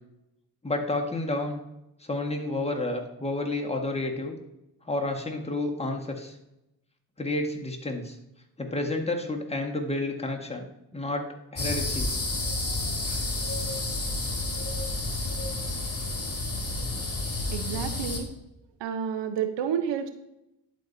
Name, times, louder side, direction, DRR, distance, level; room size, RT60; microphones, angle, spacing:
voice 1, 0.6-1.6 2.0-4.3 4.9-6.4 7.2-8.2 8.6-10.6 10.9-11.2 11.5-12.1, left 2 dB, 15° left, 1 dB, 1.7 m, -30 dB
sound 1, 11.6-18.2, left 2 dB, 35° left, 2.3 m, -30 dB
voice 2, 17.5-18.3 18.8-20.1, right 8 dB, 75° right, 8 dB, 0.9 m, -30 dB
11.0 x 4.6 x 2.8 m, 0.88 s
supercardioid pair, 45°, 43 cm